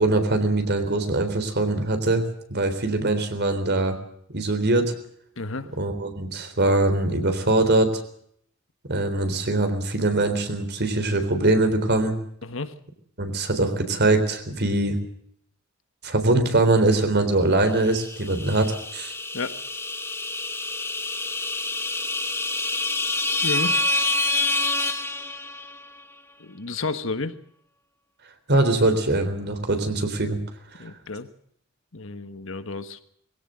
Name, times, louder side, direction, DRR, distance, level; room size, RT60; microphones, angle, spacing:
voice 1, 0.0-2.2 2.5-4.0 4.3-4.9 5.8-7.9 8.9-12.2 13.2-15.0 16.0-19.1 28.5-30.4 30.8-30.9, right 2 dB, 55° right, 8 dB, 3.8 m, -22 dB
voice 2, 5.4-5.7 12.4-12.7 19.3-19.6 23.4-23.8 26.4-27.3 30.8-31.3 31.9-33.0, left 3 dB, 70° left, 11 dB, 1.5 m, -31 dB
sound 1, 17.9-25.9, left 2 dB, 10° left, 1.5 m, -27 dB
22.0 x 16.5 x 7.7 m, 0.66 s
head